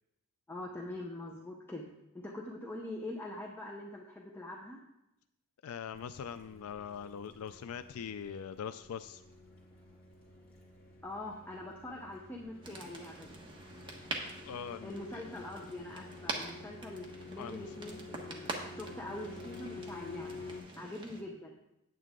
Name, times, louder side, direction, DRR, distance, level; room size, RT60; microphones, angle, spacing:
voice 1, 0.5-1.9 2.1-4.8 11.0-13.4 14.8-20.4 20.8-21.6, left 1 dB, 10° left, -1 dB, 0.8 m, -43 dB
voice 2, 5.6-9.2 14.4-15.2 17.4-17.7, left 7 dB, 70° left, 12 dB, 0.4 m, -42 dB
sound 1, 5.9-20.6, left 3 dB, 45° left, 2.4 m, -50 dB
sound 2, 12.6-21.2, right 2 dB, 20° right, 1.3 m, -45 dB
9.2 x 9.2 x 3.7 m, 0.88 s
head